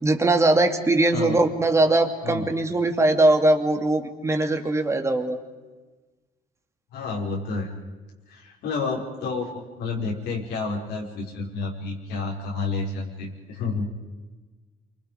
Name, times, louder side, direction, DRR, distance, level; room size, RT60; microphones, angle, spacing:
voice 1, 0.0-5.4, right 2 dB, 15° right, 5 dB, 2.6 m, -21 dB
voice 2, 6.9-7.7 8.3-13.9, left 3 dB, 80° left, -2 dB, 5.7 m, -30 dB
28.5 x 25.0 x 5.3 m, 1.2 s
cardioid pair, 110°, 17 cm